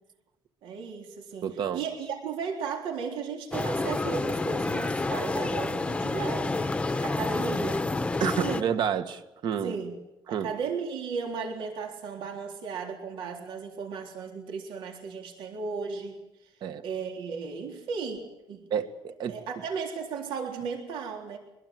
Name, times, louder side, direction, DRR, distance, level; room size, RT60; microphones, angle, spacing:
voice 1, 0.6-7.9 8.4-8.7 9.6-9.9 10.3-16.2 16.8-18.2 18.5-18.6 19.3-21.4, right 5 dB, 90° right, 1 dB, 3.9 m, -35 dB
voice 2, 1.4-1.8 6.9-7.0 8.2-9.8 10.3-10.5 16.6-16.8 18.7-19.4, right 8 dB, 60° right, 8 dB, 1.7 m, -29 dB
sound 1, 3.5-8.6, left 3 dB, 15° left, 0.9 m, -29 dB
23.5 x 22.0 x 7.8 m, 0.95 s
cardioid pair, 155°, 9 cm